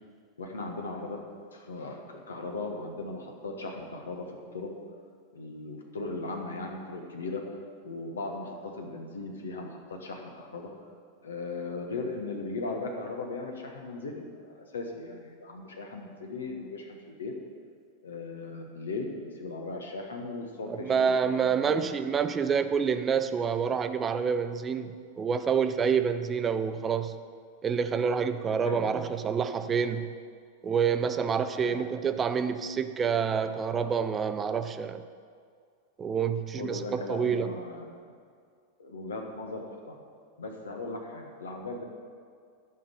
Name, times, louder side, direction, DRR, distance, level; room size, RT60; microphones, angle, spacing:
voice 1, 0.4-1.2 1.5-4.3 4.5-4.7 5.3-7.4 7.8-10.7 11.2-17.3 18.0-21.8 28.6-29.0 31.6-31.8 36.6-37.9 38.8-40.0 40.4-41.8, left 3 dB, 70° left, 2 dB, 1.3 m, -38 dB
voice 2, 20.7-27.2 27.6-30.1 30.6-35.0 36.0-37.5, right 6 dB, 20° right, 10 dB, 0.5 m, -28 dB
11.5 x 5.8 x 6.8 m, 2.1 s
figure-of-eight pair, 90°, 0 cm